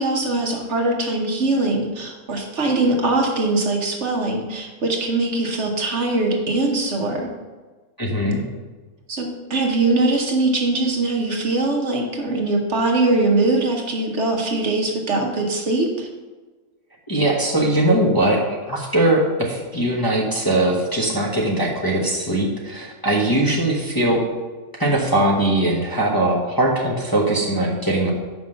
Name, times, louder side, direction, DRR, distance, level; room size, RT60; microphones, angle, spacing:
voice 1, 0.0-7.3 9.1-16.1, right 2 dB, 55° right, 2 dB, 1.2 m, -21 dB
voice 2, 8.0-8.4 17.1-18.4 18.6-24.2 24.8-28.1, right 1 dB, 15° left, -4 dB, 1.0 m, -20 dB
5.8 x 5.3 x 6.5 m, 1.3 s
omnidirectional pair, 1.5 m